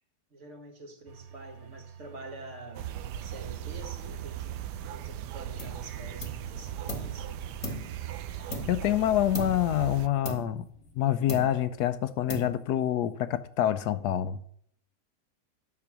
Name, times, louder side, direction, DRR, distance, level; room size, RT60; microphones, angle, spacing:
voice 1, 0.3-4.6 4.9-7.4, right 2 dB, 45° right, 1.7 m, -47 dB
sound 1, 1.1-7.7, right 8 dB, 65° right, 1.2 m, -49 dB
sound 2, 2.7-10.1, right 11 dB, 90° right, 1.2 m, -38 dB
sound 3, 5.6-5.9 6.2-7.2 7.6-9.0 9.3-9.8 10.2-11.0 11.3-11.8 12.3-12.8, equal, 20° left, 1.3 m, -38 dB
voice 2, 8.7-10.6 11.0-14.4, left 11 dB, 80° left, 1.1 m, -26 dB
9.7 x 6.9 x 6.0 m
omnidirectional pair, 1.7 m